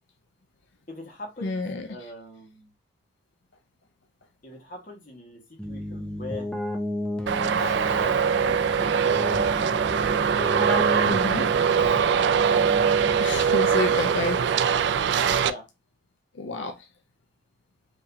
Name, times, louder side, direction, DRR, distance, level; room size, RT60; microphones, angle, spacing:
voice 1, 0.9-2.7 4.4-6.5 7.4-9.5 10.9-11.6 15.4-15.6, left 2 dB, 45° left, 1.5 m, -41 dB
voice 2, 1.4-2.1 11.0-11.5 13.2-14.4 16.3-16.9, left 3 dB, 80° left, 0.5 m, -30 dB
Keyboard (musical), 5.6-13.5, left 1 dB, 5° left, 0.6 m, -33 dB
Traffic noise roadway noise, 7.3-15.5, right 7 dB, 70° right, 0.3 m, -22 dB
4.9 x 3.0 x 2.7 m
head